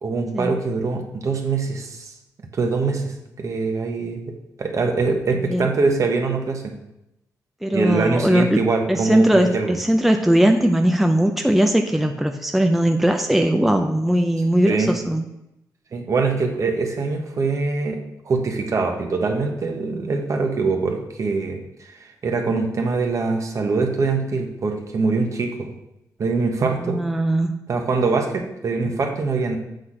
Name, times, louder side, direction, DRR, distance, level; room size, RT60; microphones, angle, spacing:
voice 1, 0.0-2.1 2.5-4.3 4.6-6.7 7.7-9.7 14.7-15.0 15.9-18.0 18.2-21.9 22.2-25.7 26.2-27.0 27.7-29.6, right 4 dB, 50° right, 3 dB, 1.2 m, -23 dB
voice 2, 7.6-8.6 8.9-15.2 26.8-27.6, right 1 dB, 5° right, 4 dB, 0.5 m, -19 dB
7.8 x 4.2 x 4.9 m, 0.86 s
cardioid pair, 95°, 7 cm